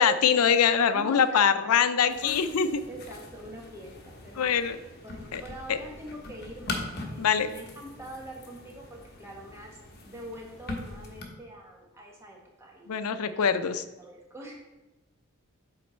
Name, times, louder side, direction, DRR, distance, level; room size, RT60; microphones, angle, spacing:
voice 1, 0.0-2.8 4.4-4.8 5.3-5.4 5.7-5.8 7.2-7.5 12.9-13.8, left 7 dB, 90° left, 11 dB, 0.5 m, -23 dB
voice 2, 0.9-1.8 2.0-2.4 2.9-4.5 5.1-9.8 10.0-13.3 13.7-14.5, right 1 dB, 10° right, -1 dB, 1.1 m, -44 dB
sound 1, 2.1-11.2, left 2 dB, 45° left, 1.0 m, -41 dB
7.5 x 4.1 x 4.3 m, 1.1 s
head